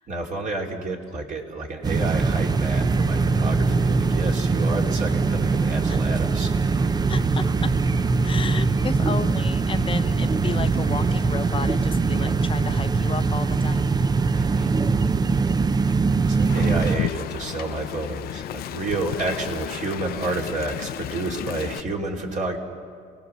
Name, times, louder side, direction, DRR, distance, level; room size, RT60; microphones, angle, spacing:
voice 1, 0.1-7.0 14.3-14.7 16.2-22.6, right 2 dB, 50° right, 0 dB, 3.4 m, -30 dB
sound 1, 1.8-17.0, right 4 dB, 25° right, 0.6 m, -22 dB
voice 2, 7.1-7.8 8.2-13.9, left 5 dB, 30° left, 8 dB, 0.8 m, -33 dB
Wind, 16.5-21.8, left 13 dB, 65° left, 0.5 m, -32 dB
28.5 x 19.0 x 6.9 m, 2.1 s
cardioid pair, 110°, 17 cm